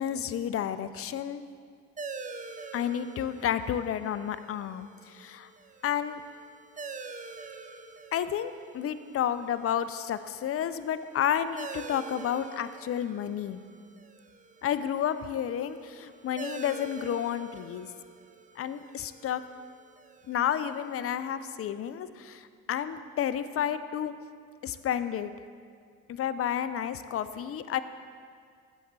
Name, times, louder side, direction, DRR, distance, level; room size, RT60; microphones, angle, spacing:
voice 1, 0.0-1.4 2.7-5.5 5.8-6.2 8.1-13.6 14.6-17.9 18.6-19.4 20.3-24.1 24.6-25.3 26.1-27.8, left 9 dB, 40° left, 12 dB, 0.4 m, -31 dB
sound 1, 2.0-21.1, right 4 dB, 20° right, 0.5 m, -46 dB
8.8 x 7.0 x 3.2 m, 2.1 s
hypercardioid pair, 55°, 39 cm